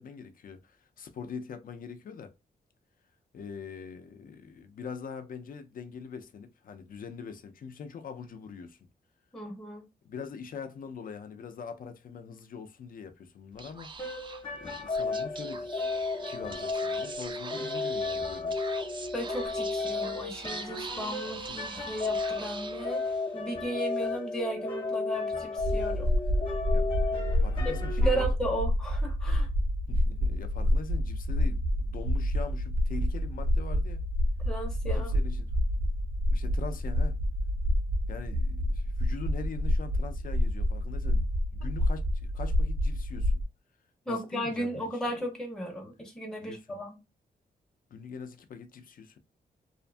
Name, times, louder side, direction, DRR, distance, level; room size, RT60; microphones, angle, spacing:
voice 1, 0.0-2.3 3.3-8.8 10.0-13.9 14.5-15.9 16.3-18.6 21.2-22.0 26.7-26.9 27.4-28.3 29.9-34.0 35.0-35.5 36.3-37.2 38.1-43.4 44.1-45.1 46.4-46.8 47.9-49.2, left 6 dB, 55° left, 0.5 m, -43 dB
voice 2, 9.3-9.8 19.1-23.0 23.3-26.1 27.6-29.5 34.4-35.1 41.6-41.7 44.1-47.0, right 1 dB, 5° left, 0.6 m, -35 dB
Speech / Whispering, 13.5-23.3, right 4 dB, 30° right, 0.3 m, -43 dB
sound 1, 14.0-28.2, left 3 dB, 35° left, 0.9 m, -33 dB
sound 2, 25.6-43.4, left 1 dB, 80° right, 0.5 m, -28 dB
2.5 x 2.5 x 2.2 m
wide cardioid pair, 115°, 17 cm